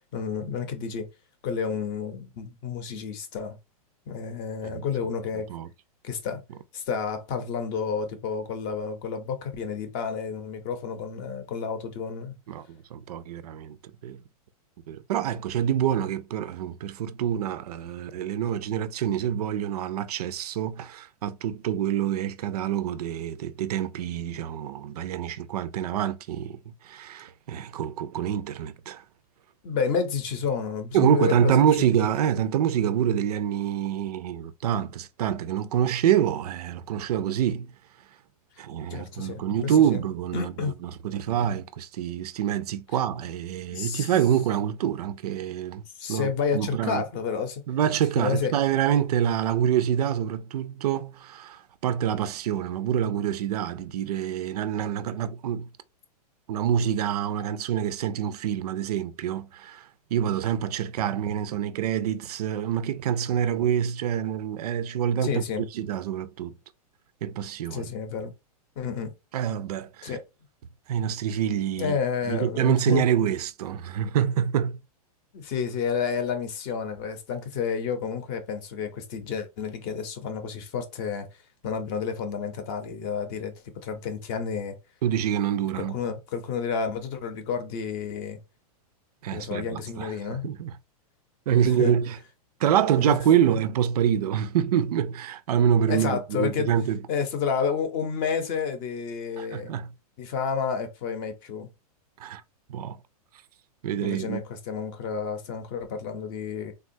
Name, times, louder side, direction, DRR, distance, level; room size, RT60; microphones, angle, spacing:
voice 1, 0.1-1.1 1.4-3.6 4.1-5.5 6.0-6.4 6.7-12.3 29.6-31.5 38.9-40.0 40.3-40.7 43.7-44.1 46.0-47.6 48.2-48.5 65.2-65.6 67.7-68.3 68.8-69.1 70.0-70.2 71.8-73.0 75.3-81.3 81.6-83.5 83.8-84.7 85.7-88.4 89.3-90.5 91.5-92.0 93.0-93.2 95.9-96.7 97.1-99.7 100.2-101.7 104.0-106.7, left 6 dB, 35° left, 0.6 m, -30 dB
voice 2, 12.5-13.8 14.0-14.2 14.9-29.0 30.9-37.7 38.6-45.8 46.1-47.0 47.7-55.7 56.5-65.4 65.7-66.6 67.2-67.9 69.3-70.2 70.9-72.0 72.3-74.8 85.0-86.0 89.2-90.8 91.5-92.2 92.6-97.0 99.4-99.9 102.2-102.4 102.7-103.0 103.8-104.4, right 9 dB, 80° right, 0.4 m, -26 dB
3.6 x 2.3 x 2.6 m
supercardioid pair, 160°, 20 cm